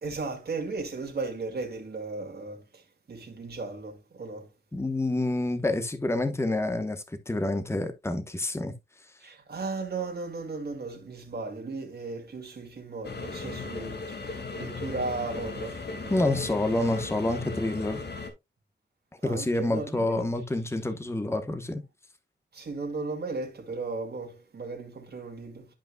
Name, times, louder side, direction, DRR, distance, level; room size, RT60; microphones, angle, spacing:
voice 1, 0.0-4.5 9.2-16.3 19.2-20.3 22.5-25.7, right 3 dB, 60° right, 2.2 m, -36 dB
voice 2, 4.7-8.7 16.1-18.0 19.2-21.8, left 2 dB, 15° left, 1.0 m, -28 dB
sound 1, 13.0-18.3, left 3 dB, 65° left, 1.9 m, -37 dB
11.5 x 5.3 x 2.2 m
wide cardioid pair, 100°, 19 cm